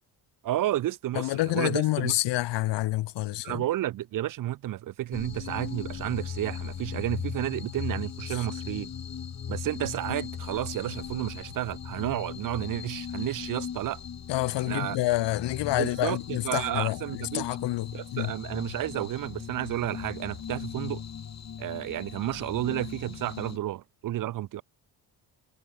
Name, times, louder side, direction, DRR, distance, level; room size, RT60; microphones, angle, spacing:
voice 1, 0.4-2.1 3.4-8.9 9.5-14.0 14.7-15.0 15.8-17.5 17.9-21.0 21.6-24.6, right 14 dB, 55° right, 0.5 m, -31 dB
voice 2, 1.1-3.6 8.3-8.5 14.3-18.3, left 17 dB, 90° left, 0.7 m, -28 dB
sound 1, 5.1-23.6, left 8 dB, 40° left, 1.3 m, -38 dB
cardioid pair, 110°, 41 cm